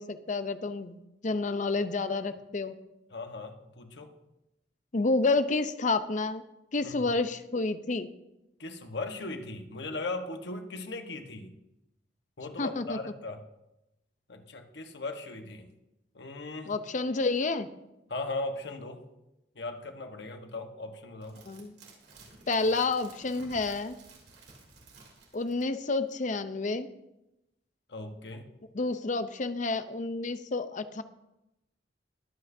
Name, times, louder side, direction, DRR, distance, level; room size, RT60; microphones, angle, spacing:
voice 1, 0.0-2.8 4.9-6.4 6.7-8.1 12.6-13.0 16.6-17.7 21.5-21.7 22.5-24.0 25.3-26.9 28.7-31.0, left 3 dB, 45° left, 11 dB, 0.7 m, -29 dB
voice 2, 3.1-4.1 6.8-7.1 8.6-11.5 12.4-13.4 14.3-15.7 16.1-16.7 18.1-19.0 19.5-21.4 27.9-28.5, left 2 dB, 80° left, 5 dB, 1.2 m, -38 dB
sound 1, 21.2-25.8 26.1-26.2, right 3 dB, 90° right, 3.0 m, -53 dB
22.0 x 8.3 x 2.7 m, 0.91 s
head